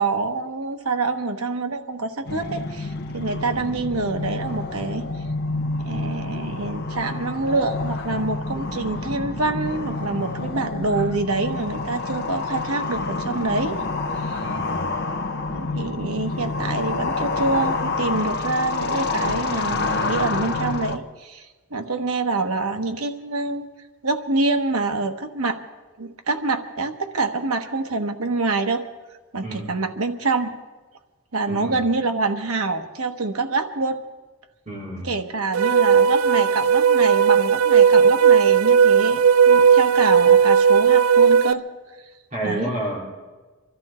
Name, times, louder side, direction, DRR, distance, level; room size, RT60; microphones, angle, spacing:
voice 1, 0.0-5.1 5.8-13.8 14.2-14.4 15.4-23.7 24.0-25.6 26.0-28.8 29.3-30.5 31.3-34.0 35.0-41.6 42.4-42.7, right 3 dB, 85° right, 5 dB, 1.3 m, -26 dB
sound 1, 2.3-21.0, left 3 dB, 50° left, 0.9 m, -28 dB
voice 2, 14.4-14.9 29.4-29.8 31.5-31.9 34.7-35.1 42.3-43.0, right 1 dB, 35° right, -4 dB, 4.1 m, -30 dB
sound 2, 35.5-41.5, right 7 dB, 70° right, 0.4 m, -15 dB
24.0 x 13.5 x 4.4 m, 1.2 s
head